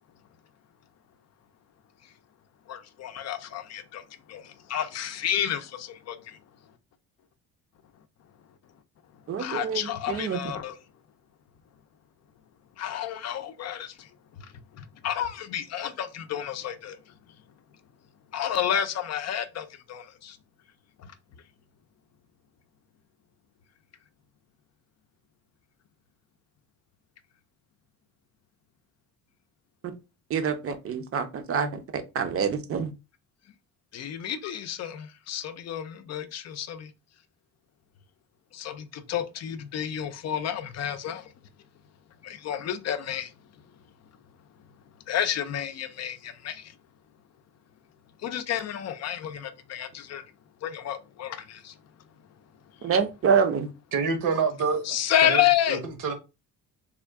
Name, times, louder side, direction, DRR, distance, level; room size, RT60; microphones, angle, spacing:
voice 1, 2.7-4.0 4.3-6.4 9.4-10.7 12.8-13.9 14.8-17.0 18.3-20.4 33.9-36.9 38.5-41.2 42.2-43.3 45.1-46.6 48.2-50.2 50.6-51.7 54.8-55.8, left 10 dB, 50° left, 0.5 m, -30 dB
voice 2, 9.3-9.8 10.1-10.4 30.3-32.9 52.8-53.7, right 6 dB, 40° right, 0.6 m, -26 dB
voice 3, 53.9-54.8 55.2-55.8 56.0-56.1, right 5 dB, 65° right, 1.0 m, -26 dB
3.6 x 2.3 x 3.4 m
cardioid pair, 125°, 34 cm